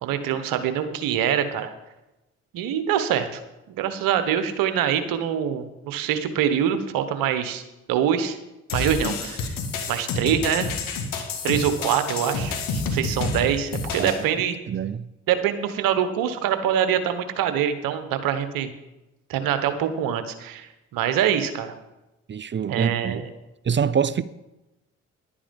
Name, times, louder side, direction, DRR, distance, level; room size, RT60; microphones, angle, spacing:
voice 1, 0.0-1.7 2.5-3.4 3.7-7.6 7.9-8.4 8.7-9.5 9.9-10.7 11.4-14.6 15.3-18.7 19.3-21.7 22.7-23.2, right 9 dB, 75° right, 1.1 m, -24 dB
sound 1, 8.7-14.2, left 4 dB, 75° left, 1.7 m, -29 dB
voice 2, 14.7-15.1 22.3-23.2 23.6-24.2, right 7 dB, 35° right, 0.5 m, -25 dB
11.0 x 8.7 x 5.3 m
hypercardioid pair, 45°, 34 cm